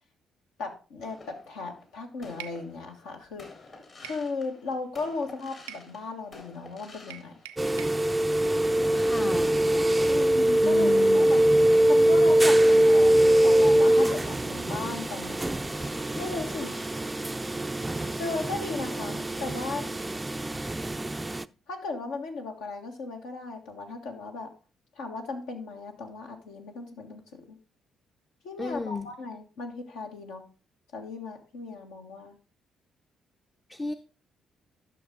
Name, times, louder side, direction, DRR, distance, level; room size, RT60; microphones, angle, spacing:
voice 1, 0.6-3.5 4.0-7.3 10.1-11.4 11.9-15.4 16.1-16.7 18.1-19.8 21.7-24.5 25.0-27.6 28.4-30.4 30.9-32.4, left 3 dB, 75° left, 2 dB, 1.5 m, -36 dB
sound 1, 1.0-7.9 8.4-10.5 10.8-19.3, left 3 dB, 50° left, 3.4 m, -50 dB
sound 2, 2.4-2.6 4.0-4.3 5.7-5.9 7.1-8.0, right 11 dB, 85° right, 0.4 m, -43 dB
sound 3, 7.6-21.4, right 1 dB, 15° right, 0.4 m, -23 dB
voice 2, 8.9-9.5 10.6-11.3 28.6-29.1 33.7-33.9, left 4 dB, 25° left, 8 dB, 0.6 m, -33 dB
11.5 x 6.4 x 3.8 m, 0.34 s
hypercardioid pair, 45°, 0 cm